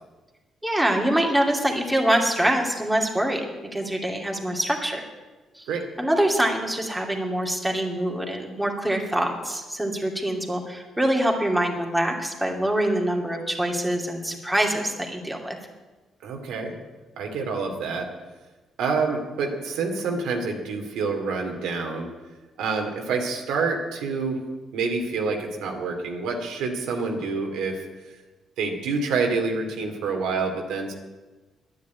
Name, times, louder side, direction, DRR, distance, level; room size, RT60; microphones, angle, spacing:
voice 1, 0.6-3.5 3.7-5.0 5.5-5.7 6.0-15.6, right 1 dB, 5° right, 1 dB, 2.6 m, -24 dB
voice 2, 16.2-16.8 17.2-18.1 18.8-22.1 22.6-24.4 24.7-27.8 28.6-30.9, right 4 dB, 85° right, 2 dB, 2.4 m, -27 dB
10.5 x 10.0 x 9.5 m, 1.2 s
cardioid pair, 90°, 0 cm